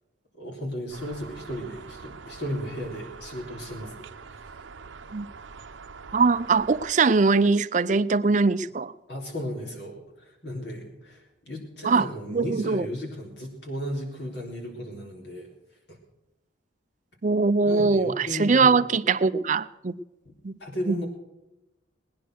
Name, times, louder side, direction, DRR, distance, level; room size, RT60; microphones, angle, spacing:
voice 1, 0.4-4.4 9.1-15.5 15.9-16.0 17.6-18.8 20.6-21.1, equal, 60° left, -1 dB, 4.0 m, -35 dB
sound 1, 0.9-6.9, right 5 dB, 80° right, 0.7 m, -44 dB
voice 2, 6.1-8.9 11.8-12.9 17.2-19.9 20.4-20.6 20.9-21.0, right 4 dB, 40° right, 12 dB, 0.4 m, -22 dB
19.0 x 10.0 x 6.3 m, 0.99 s
head